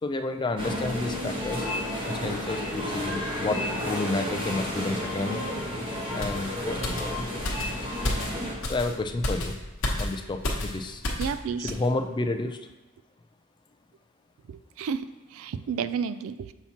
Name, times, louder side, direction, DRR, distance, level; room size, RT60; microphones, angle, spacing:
voice 1, 0.0-1.7 2.1-5.4 6.1-7.2 8.6-9.6 10.0-11.0 11.6-12.7, left 2 dB, 20° left, 7 dB, 0.3 m, -30 dB
sound 1, 0.6-8.5, left 1 dB, 25° right, 1.1 m, -31 dB
sound 2, 6.2-11.4 11.7-11.9, left 1 dB, 60° left, 1.1 m, -32 dB
voice 2, 11.2-11.7 14.5-16.5, right 6 dB, 65° right, 13 dB, 0.3 m, -32 dB
7.0 x 5.7 x 2.9 m, 1.1 s
head